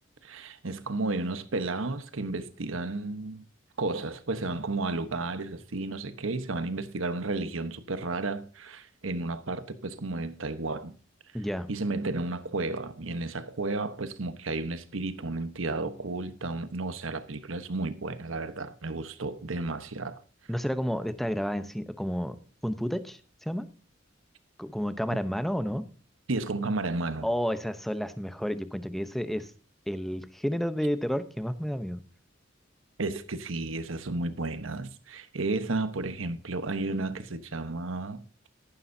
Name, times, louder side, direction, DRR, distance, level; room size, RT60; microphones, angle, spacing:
voice 1, 0.2-3.4 3.8-10.9 11.7-20.2 26.3-27.3 33.0-38.5, right 3 dB, 85° right, 1.1 m, -32 dB
voice 2, 11.3-11.7 20.5-22.4 22.6-23.7 24.6-25.8 27.2-29.5 29.9-32.0, equal, ahead, 0.8 m, -31 dB
14.0 x 12.0 x 2.8 m
head